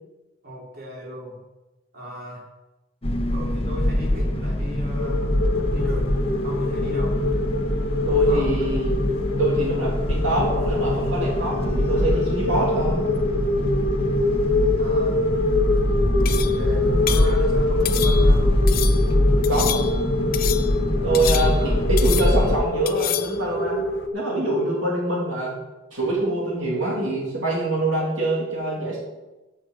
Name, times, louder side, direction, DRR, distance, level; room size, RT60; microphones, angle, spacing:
voice 1, 0.4-1.4 1.9-2.4 3.3-5.2 5.7-6.2 6.4-7.2 8.3-8.7 14.8-15.2 16.3-18.6 21.0-22.0, left 1 dB, 55° right, -3 dB, 3.0 m, -36 dB
sound 1, 3.0-22.6, left 1 dB, 30° left, 0.9 m, -23 dB
sound 2, 4.9-24.1, left 3 dB, 70° left, 1.0 m, -26 dB
voice 2, 8.0-8.9 9.4-13.1 19.5-19.8 21.0-23.8 24.1-25.6 25.9-29.0, right 1 dB, 80° right, -4 dB, 2.6 m, -24 dB
sound 3, 16.3-16.6 17.1-17.3 17.9-18.4 18.7-19.1 19.4-20.0 20.3-20.8 21.1-21.7 22.0-22.5 22.9-23.4, left 11 dB, 50° left, 0.5 m, -29 dB
8.3 x 6.1 x 7.8 m, 1.1 s
head